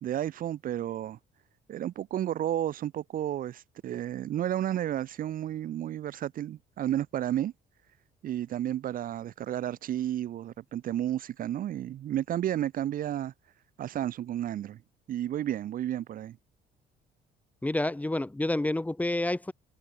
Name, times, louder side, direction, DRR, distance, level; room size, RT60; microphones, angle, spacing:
voice 1, 0.0-1.2 1.7-7.5 8.2-13.3 13.8-14.8 15.1-16.4, right 11 dB, 55° right, 1.0 m, -32 dB
voice 2, 17.6-19.5, left 1 dB, 10° left, 1.3 m, -29 dB
cardioid pair, 110°, 17 cm